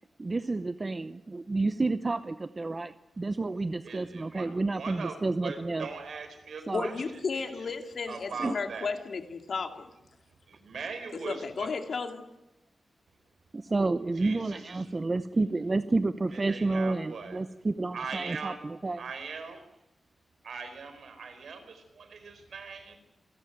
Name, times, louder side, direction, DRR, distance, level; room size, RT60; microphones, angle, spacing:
voice 1, 0.2-5.9 6.7-6.9 8.4-8.5 13.5-19.0, right 3 dB, 30° right, 11 dB, 0.7 m, -30 dB
voice 2, 3.8-5.2 5.4-7.0 7.3-7.5 8.1-9.0 10.5-11.7 14.2-14.9 16.3-17.4 17.9-18.6 19.0-19.6 20.4-23.0, right 5 dB, 80° right, 8 dB, 4.4 m, -40 dB
voice 3, 6.7-9.9 11.2-12.3, left 4 dB, 65° left, 5 dB, 2.5 m, -34 dB
27.5 x 13.5 x 9.3 m, 0.94 s
wide cardioid pair, 115°, 0 cm